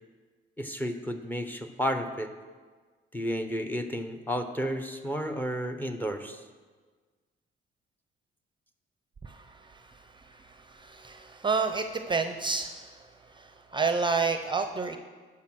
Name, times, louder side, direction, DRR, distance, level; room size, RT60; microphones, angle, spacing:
voice 1, 0.6-2.3 3.1-6.4, equal, 10° left, 7 dB, 0.8 m, -32 dB
voice 2, 10.9-12.7 13.7-15.0, right 4 dB, 25° right, 8 dB, 0.6 m, -28 dB
12.0 x 4.8 x 6.2 m, 1.4 s
cardioid pair, 90°, 20 cm